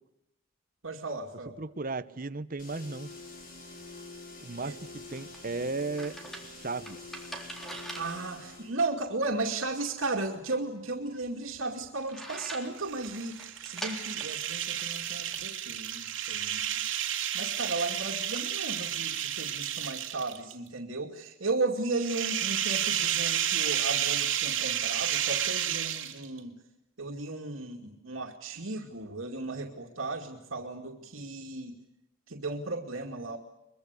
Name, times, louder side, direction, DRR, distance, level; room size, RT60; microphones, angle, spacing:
voice 1, 0.8-1.6 4.6-4.8 7.9-16.8 17.3-26.6 27.0-31.8 32.3-33.4, right 3 dB, 85° right, 2 dB, 2.5 m, -35 dB
voice 2, 1.6-3.1 4.4-6.2 6.4-7.2, right 3 dB, 45° right, 11 dB, 1.0 m, -35 dB
sound 1, 2.6-8.8, left 3 dB, 45° left, 5.6 m, -46 dB
sound 2, 4.9-15.5, right 1 dB, ahead, 3.8 m, -45 dB
sound 3, 12.8-20.5 21.9-26.4, right 10 dB, 70° right, 2.8 m, -31 dB
23.5 x 23.0 x 8.3 m, 0.87 s
head